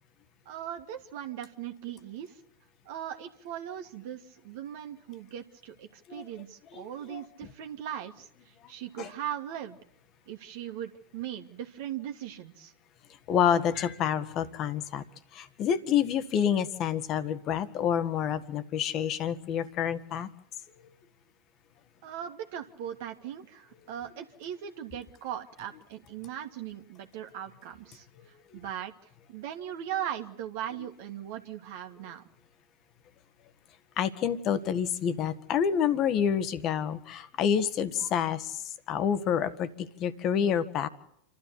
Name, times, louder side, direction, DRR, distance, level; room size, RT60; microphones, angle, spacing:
voice 1, 0.5-2.4 2.9-9.8 10.3-12.7 22.0-28.1 28.5-28.9 29.3-32.2, right 10 dB, 60° right, 4 dB, 1.8 m, -39 dB
voice 2, 6.7-7.2 9.0-9.1 13.3-15.0 15.3-20.3 34.0-40.9, left 8 dB, 40° left, 13 dB, 1.6 m, -28 dB
27.5 x 13.0 x 8.4 m, 0.79 s
figure-of-eight pair, 90°, 0 cm